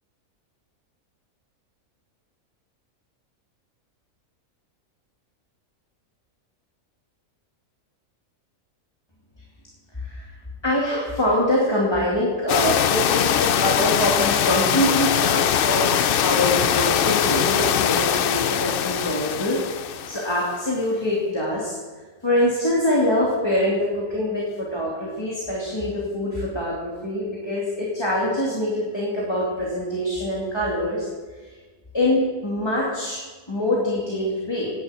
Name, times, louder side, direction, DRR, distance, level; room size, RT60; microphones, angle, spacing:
voice 1, 9.9-10.3 10.6-21.8 22.2-31.1 31.4-31.5 31.9-33.2 33.5-34.7, left 1 dB, 20° left, -5 dB, 2.7 m, -24 dB
sound 1, 12.5-20.5, left 9 dB, 70° left, 0.5 m, -22 dB
12.0 x 10.5 x 8.5 m, 1.4 s
omnidirectional pair, 1.5 m